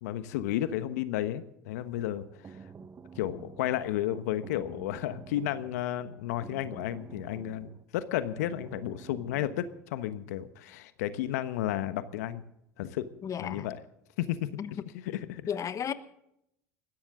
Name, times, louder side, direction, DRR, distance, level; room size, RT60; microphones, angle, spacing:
voice 1, 0.0-2.6 3.2-12.4 12.8-13.1 13.4-13.8 14.2-14.5 14.9-15.4, left 12 dB, 75° left, 12 dB, 1.1 m, -32 dB
sound 1, 2.0-9.8, right 6 dB, 30° right, 1.0 m, -50 dB
voice 2, 13.2-13.7 14.6-14.7 15.5-15.9, left 8 dB, 35° left, 13 dB, 1.1 m, -33 dB
20.5 x 16.0 x 3.7 m, 0.78 s
hypercardioid pair, 75°, 9 cm